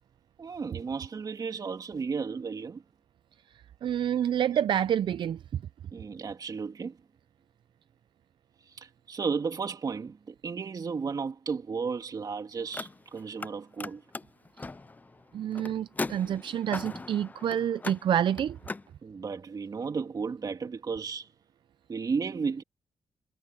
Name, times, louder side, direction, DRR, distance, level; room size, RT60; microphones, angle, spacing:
voice 1, 0.4-2.8 4.2-4.6 5.9-7.0 8.8-14.0 19.0-21.3 21.9-22.6, right 5 dB, 45° right, 2.4 m, -34 dB
voice 2, 3.8-5.4 15.3-18.6, right 10 dB, 70° right, 0.5 m, -28 dB
Car, 12.6-13.5 13.8-18.9, left 3 dB, 20° left, 0.4 m, -39 dB
cardioid pair, 105°, 9 cm